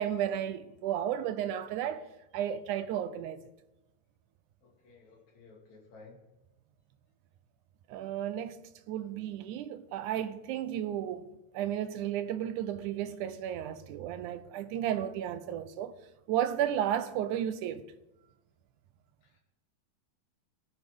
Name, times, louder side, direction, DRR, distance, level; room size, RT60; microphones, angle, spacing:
voice 1, 0.0-2.1 2.3-3.4 7.9-8.6 8.9-11.3 11.5-16.0 16.3-17.8, right 10 dB, 90° right, 2.3 m, -33 dB
voice 2, 4.6-6.2 19.2-19.4, left 3 dB, 70° left, 3.8 m, -55 dB
20.5 x 8.7 x 3.6 m
omnidirectional pair, 3.4 m